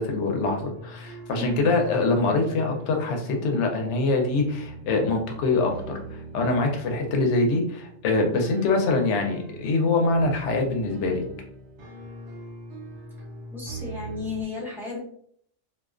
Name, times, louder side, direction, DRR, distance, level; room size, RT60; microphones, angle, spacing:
voice 1, 0.0-5.7 6.1-11.2, left 3 dB, 70° left, 3 dB, 0.9 m, -24 dB
sound 1, 0.7-14.4, right 1 dB, 90° right, 1.0 m, -41 dB
voice 2, 1.4-1.7 13.5-15.0, left 4 dB, ahead, -5 dB, 0.6 m, -34 dB
2.3 x 2.2 x 2.4 m, 0.64 s
omnidirectional pair, 1.3 m